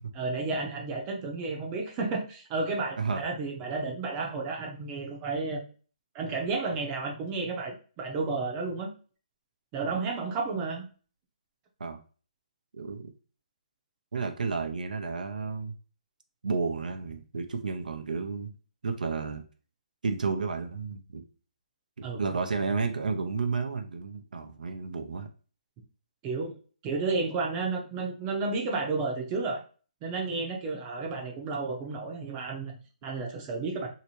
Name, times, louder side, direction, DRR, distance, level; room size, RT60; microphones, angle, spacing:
voice 1, 0.1-5.6 6.1-8.9 9.7-10.9 22.0-22.2 26.2-26.6 26.8-29.6 30.0-33.9, right 3 dB, 20° right, 1 dB, 0.7 m, -32 dB
voice 2, 12.7-13.1 14.1-15.7 16.4-18.5 18.8-19.4 20.0-21.2 22.0-25.3, right 4 dB, 85° right, 5 dB, 0.6 m, -32 dB
3.2 x 2.8 x 3.0 m, 0.38 s
hypercardioid pair, 160°, 4 cm